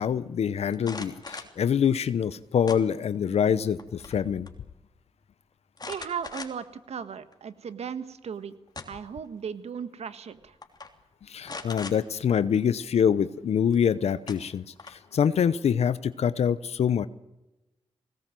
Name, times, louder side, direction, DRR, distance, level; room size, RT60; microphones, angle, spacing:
voice 1, 0.0-4.5 11.3-17.1, left 8 dB, 75° left, 15 dB, 0.8 m, -25 dB
sound 1, 0.7-1.6 2.7-3.3 3.7-4.2 4.5-4.6 5.8-6.8 7.3-7.4 8.4-9.2 10.1-10.3 10.6-10.9 11.4-12.0 13.7-13.8 14.3-15.1, left 3 dB, 40° left, 3.1 m, -40 dB
voice 2, 5.9-8.6 8.9-10.5, right 7 dB, 75° right, 12 dB, 1.5 m, -36 dB
20.5 x 18.0 x 7.6 m, 1.0 s
cardioid pair, 55°, 11 cm